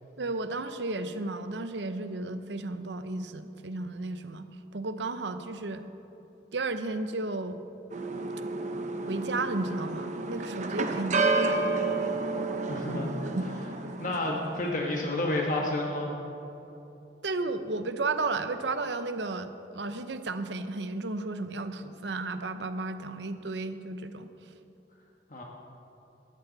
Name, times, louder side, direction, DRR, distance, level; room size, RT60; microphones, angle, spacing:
voice 1, 0.2-4.5 4.7-5.8 6.5-7.6 9.1-11.7 13.4-13.5 17.2-24.3, right 3 dB, 85° right, 10 dB, 0.8 m, -33 dB
sound 1, 7.9-14.5, right 3 dB, 40° right, 0.9 m, -30 dB
voice 2, 12.7-13.1 13.4-13.5 14.0-16.2 25.3-25.4, left 1 dB, 50° left, -1 dB, 1.5 m, -30 dB
18.5 x 14.0 x 4.1 m, 2.9 s
head